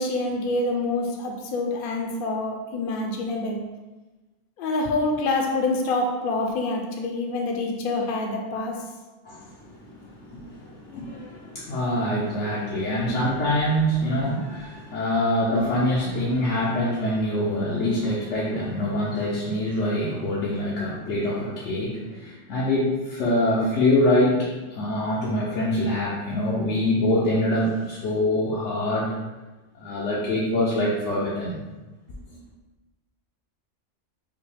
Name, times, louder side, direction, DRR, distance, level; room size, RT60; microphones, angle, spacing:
voice 1, 0.0-3.6 4.6-8.8, left 2 dB, 60° left, 1 dB, 0.7 m, -26 dB
voice 2, 9.2-29.1 29.7-31.6, left 1 dB, 85° left, -6 dB, 1.0 m, -25 dB
5.3 x 2.2 x 3.2 m, 1.2 s
omnidirectional pair, 1.2 m